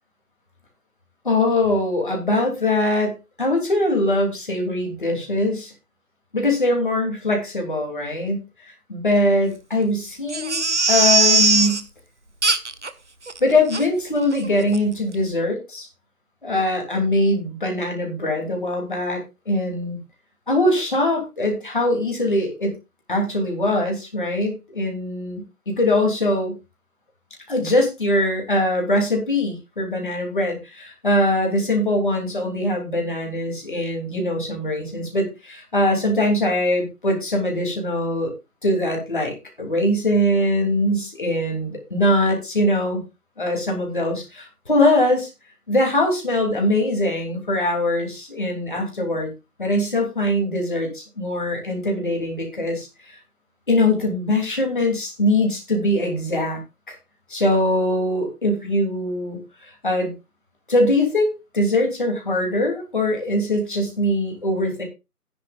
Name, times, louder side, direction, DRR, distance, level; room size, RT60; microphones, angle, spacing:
voice 1, 1.2-5.7 6.3-8.4 8.9-11.8 13.4-15.9 16.4-20.0 20.5-22.7 23.1-26.5 27.5-38.3 38.6-43.0 43.4-45.3 45.7-49.3 49.6-53.2 53.7-56.6 56.9-57.0 57.3-60.1 60.7-64.8, left 1 dB, 30° left, 1 dB, 3.1 m, -22 dB
Crying sobbing, 10.3-11.8 12.4-12.9 13.3-13.4 13.7-13.8 14.3-14.5 14.7-14.8, right 3 dB, 50° right, 1.0 m, -19 dB
13.5 x 10.0 x 2.5 m, 0.25 s
figure-of-eight pair, 175°, 46 cm